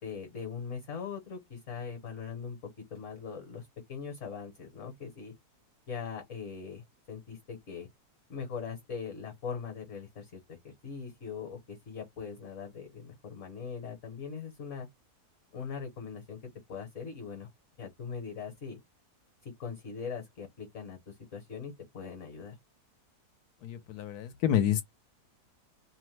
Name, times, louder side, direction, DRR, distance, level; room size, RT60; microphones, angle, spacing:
voice 1, 0.0-2.6 2.9-5.3 5.9-7.9 8.3-14.9 15.5-17.5 17.8-18.8 19.4-22.5, left 6 dB, 55° left, 1.2 m, -41 dB
voice 2, 23.6-24.8, left 10 dB, 75° left, 1.2 m, -28 dB
2.9 x 2.1 x 3.1 m
omnidirectional pair, 1.7 m